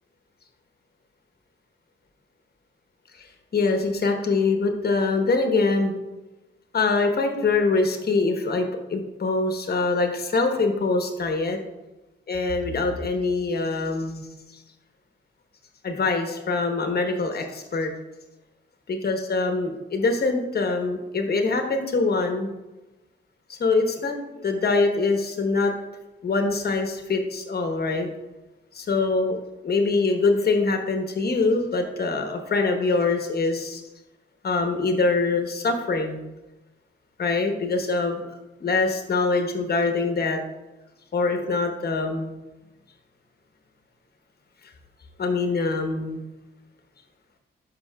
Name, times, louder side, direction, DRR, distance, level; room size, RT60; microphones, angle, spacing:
voice 1, 3.5-5.9 6.7-11.6 12.3-14.2 15.8-17.9 18.9-22.5 23.5-25.7 26.2-28.1 28.7-33.8 34.4-36.2 37.2-38.2 38.6-40.4 41.1-42.3 45.2-46.2, left 3 dB, 50° left, 5 dB, 1.1 m, -24 dB
11.0 x 5.6 x 2.3 m, 1.1 s
cardioid pair, 75°, 21 cm